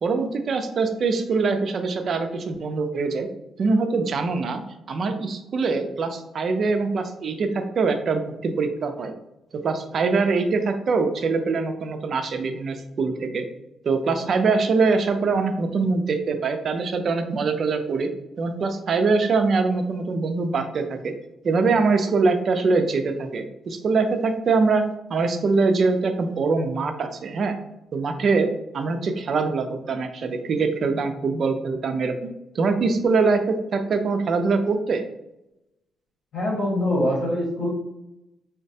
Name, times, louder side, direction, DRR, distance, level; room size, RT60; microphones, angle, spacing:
voice 1, 0.0-3.3 3.6-4.6 4.9-9.1 9.6-13.4 13.8-18.1 18.4-21.1 21.4-24.8 25.1-27.5 27.9-28.5 28.7-32.1 32.5-35.0, right 4 dB, 50° right, 6 dB, 0.4 m, -23 dB
voice 2, 36.3-37.7, left 1 dB, 70° left, -6 dB, 1.2 m, -23 dB
3.9 x 2.1 x 2.7 m, 0.90 s
cardioid pair, 90°, 0 cm